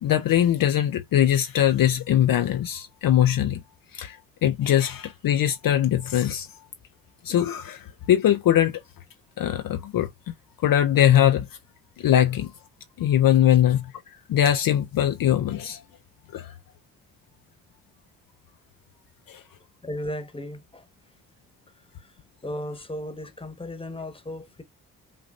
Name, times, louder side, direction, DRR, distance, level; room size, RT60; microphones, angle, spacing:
voice 1, 0.0-3.6 3.9-6.5 7.2-8.8 9.4-10.1 10.6-11.5 12.0-12.5 13.0-13.9 14.3-15.8 16.3-16.5 19.3-19.4, left 11 dB, 60° left, 0.6 m, -21 dB
voice 2, 19.8-20.9 21.7-22.1 22.4-24.6, left 1 dB, 15° left, 1.2 m, -35 dB
5.3 x 2.5 x 2.5 m
supercardioid pair, 45°, 40 cm